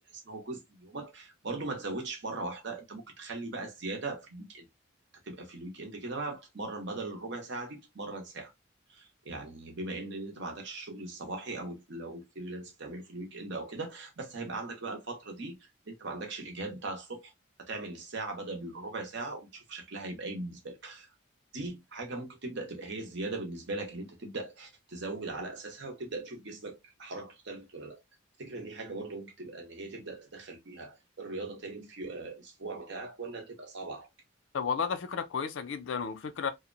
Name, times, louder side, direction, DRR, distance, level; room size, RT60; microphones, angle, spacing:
voice 1, 0.0-4.6 5.2-8.5 8.9-17.3 17.6-21.1 21.5-28.0 28.4-34.1, right 2 dB, 55° right, 0.8 m, -39 dB
voice 2, 34.5-36.5, left 6 dB, 60° left, 0.4 m, -32 dB
2.7 x 2.0 x 2.5 m
head